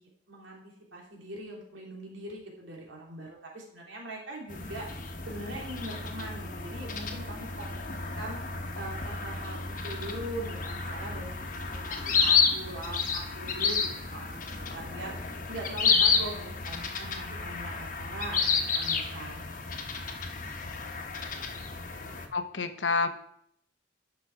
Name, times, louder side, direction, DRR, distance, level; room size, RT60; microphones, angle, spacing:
voice 1, 0.0-4.9 5.3-8.4 8.7-13.8 14.1-14.4 14.7-19.4, right 1 dB, 85° right, -1 dB, 3.0 m, -41 dB
sound 1, 4.5-22.3, left 5 dB, 45° left, 1.1 m, -31 dB
voice 2, 22.3-23.1, left 4 dB, 75° left, 8 dB, 0.9 m, -28 dB
11.0 x 6.3 x 4.7 m, 0.72 s
head